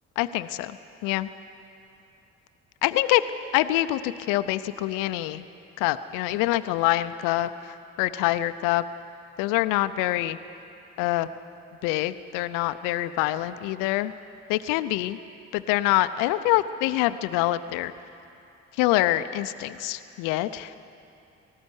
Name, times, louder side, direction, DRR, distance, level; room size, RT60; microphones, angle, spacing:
voice 1, 0.2-0.7 1.0-1.3 2.8-3.2 3.5-5.4 5.8-7.5 8.0-8.8 9.4-10.4 11.0-11.3 11.8-14.1 14.5-15.2 15.5-17.9 18.8-20.8, left 16 dB, 75° left, 12 dB, 0.7 m, -25 dB
19.0 x 14.0 x 9.8 m, 2.7 s
hypercardioid pair, 45°, 32 cm